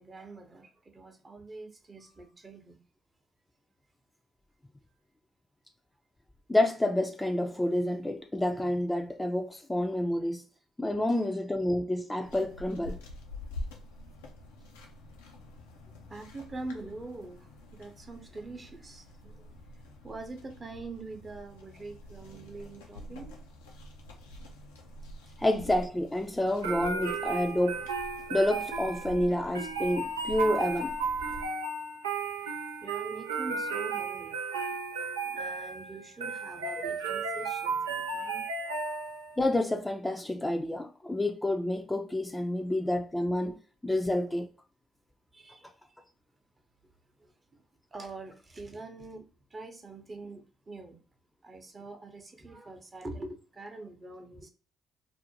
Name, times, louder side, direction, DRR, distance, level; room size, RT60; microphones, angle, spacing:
voice 1, 0.0-2.8 10.8-11.2 16.1-23.3 32.3-34.4 34.6-38.5 45.3-45.7 46.8-46.9 47.2-47.6 47.9-51.0 51.4-54.5, right 2 dB, 35° right, 0.7 m, -44 dB
voice 2, 6.5-10.4 10.8-13.0 25.4-27.8 28.3-30.9 39.4-43.6 43.8-44.5, left 1 dB, 15° left, 0.4 m, -29 dB
sound 1, 12.2-31.5, left 1 dB, 85° left, 0.4 m, -47 dB
sound 2, 26.6-39.4, right 4 dB, 90° right, 0.4 m, -34 dB
2.5 x 2.1 x 2.7 m
hypercardioid pair, 50°, 0 cm